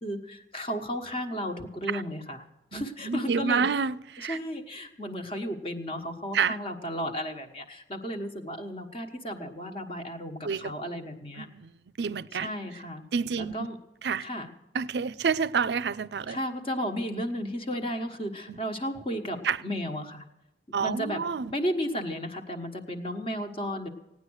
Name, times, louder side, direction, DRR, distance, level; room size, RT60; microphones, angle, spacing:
voice 1, 0.0-2.5 2.7-3.7 4.2-11.5 12.3-13.0 13.4-13.8 14.2-14.5 16.3-20.2 20.8-21.2 21.5-23.9, equal, 35° left, 1.3 m, -34 dB
voice 2, 2.7-4.4 6.3-6.6 10.4-10.7 11.4-11.7 12.0-12.5 13.1-13.7 14.0-14.3 14.7-16.4 18.5-18.6 19.4-19.6 20.7-21.5, right 6 dB, 75° right, 0.5 m, -28 dB
17.0 x 9.8 x 6.4 m
head